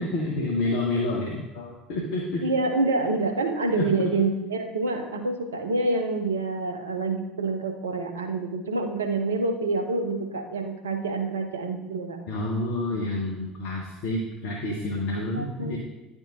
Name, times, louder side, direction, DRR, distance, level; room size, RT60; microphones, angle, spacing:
voice 1, 0.0-2.4 3.7-3.9 12.3-15.8, left 2 dB, 55° left, -2 dB, 0.8 m, -29 dB
voice 2, 2.4-12.2 15.4-15.7, right 3 dB, 75° right, 5 dB, 0.6 m, -27 dB
10.0 x 3.6 x 2.7 m, 1.0 s
figure-of-eight pair, 65°, 0 cm